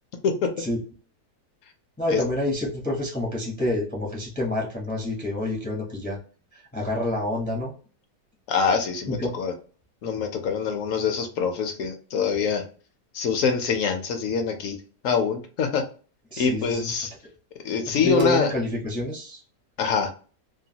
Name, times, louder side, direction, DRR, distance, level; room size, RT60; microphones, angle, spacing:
voice 1, 2.0-6.2 6.5-7.7 9.1-9.3 16.3-16.9 18.0-19.4, left 1 dB, 10° left, -2 dB, 0.4 m, -28 dB
voice 2, 8.5-9.5 10.0-12.6 13.1-14.8 15.0-15.8 16.4-17.1 17.6-18.5 19.8-20.1, left 5 dB, 65° left, 5 dB, 0.8 m, -24 dB
3.0 x 2.2 x 2.7 m, 0.38 s
omnidirectional pair, 1.8 m